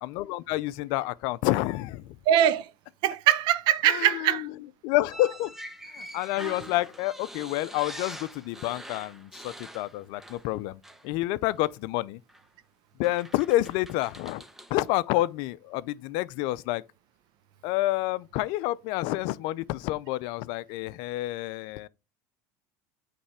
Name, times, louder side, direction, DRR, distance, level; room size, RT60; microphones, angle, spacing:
voice 1, 0.0-2.2 3.8-4.5 4.8-5.5 5.9-12.2 13.0-14.4 14.7-16.8 17.6-21.9, left 17 dB, 65° left, 0.5 m, -29 dB
voice 2, 2.3-2.7 3.0-4.5, right 11 dB, 60° right, 0.7 m, -22 dB
sound 1, 5.1-10.6 10.8-11.1 12.3-12.4 13.0-14.8, right 1 dB, 5° right, 0.8 m, -44 dB
8.6 x 3.3 x 4.8 m
supercardioid pair, 100°, 8 cm